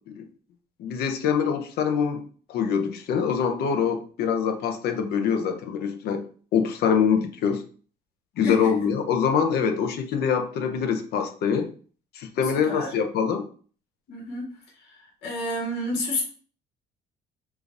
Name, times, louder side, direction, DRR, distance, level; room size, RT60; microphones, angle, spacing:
voice 1, 0.8-2.2 2.5-6.3 6.5-7.6 8.4-11.7 12.1-13.4, left 7 dB, 70° left, 6 dB, 0.7 m, -24 dB
voice 2, 14.1-14.4 15.2-16.2, left 1 dB, 85° left, -3 dB, 1.7 m, -29 dB
4.9 x 2.5 x 2.6 m, 0.43 s
cardioid pair, 110°, 17 cm